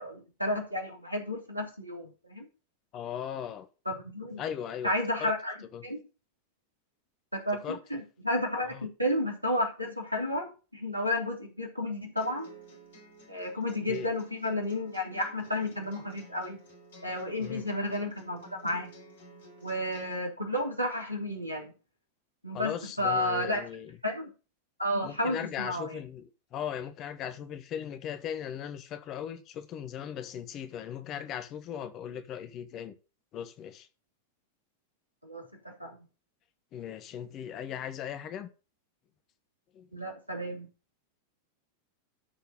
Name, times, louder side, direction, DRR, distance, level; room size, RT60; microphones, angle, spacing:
voice 1, 0.0-2.5 3.8-4.4 4.8-5.5 5.8-6.0 7.3-12.5 13.3-16.6 17.0-18.9 19.6-21.7 22.4-22.7 23.0-23.6 24.0-24.3 24.8-25.9 35.2-35.4 35.8-36.0 39.9-40.7, left 1 dB, 90° right, 3.0 m, -32 dB
voice 2, 2.9-3.7 4.4-5.3 5.7-5.8 7.6-7.8 8.7-8.9 13.9-14.1 17.4-17.7 22.5-24.0 25.0-33.0 33.3-33.9 36.7-38.5 39.7-39.9, left 9 dB, 35° left, 1.2 m, -38 dB
sound 1, 12.2-20.2, right 2 dB, 60° left, 4.1 m, -52 dB
13.0 x 4.6 x 5.4 m
figure-of-eight pair, 90°, 0 cm